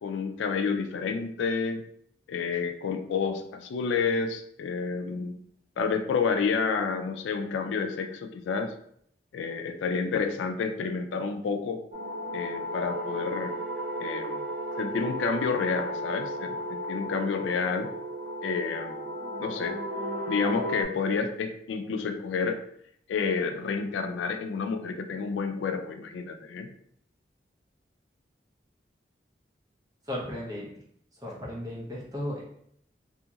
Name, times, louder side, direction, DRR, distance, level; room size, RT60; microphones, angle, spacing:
voice 1, 0.0-1.8 2.3-5.4 5.8-8.7 9.3-11.8 12.3-13.6 14.0-14.5 14.8-17.9 18.4-19.0 19.4-19.8 20.3-22.6 23.1-26.7, left 5 dB, 90° left, 7 dB, 0.3 m, -29 dB
sound 1, 11.9-20.8, equal, 50° right, 0.4 m, -34 dB
voice 2, 30.1-30.7 31.2-32.4, left 1 dB, 20° right, -5 dB, 0.7 m, -35 dB
2.8 x 2.7 x 2.3 m, 0.68 s
head